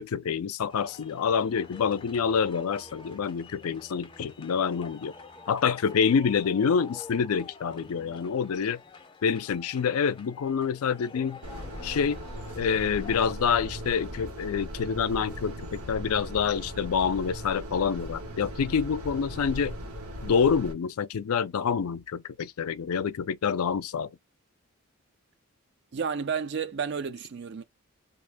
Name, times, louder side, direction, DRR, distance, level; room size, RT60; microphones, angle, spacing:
voice 1, 0.0-5.1 5.5-8.8 9.2-11.4 11.8-12.2 12.6-19.8 20.2-24.1, left 6 dB, 80° left, 0.4 m, -27 dB
sound 1, 0.7-13.3, left 3 dB, 25° left, 0.5 m, -48 dB
sound 2, 11.4-20.7, equal, 80° right, 1.5 m, -38 dB
voice 2, 25.9-27.6, right 6 dB, 50° right, 0.4 m, -31 dB
2.8 x 2.6 x 3.4 m
head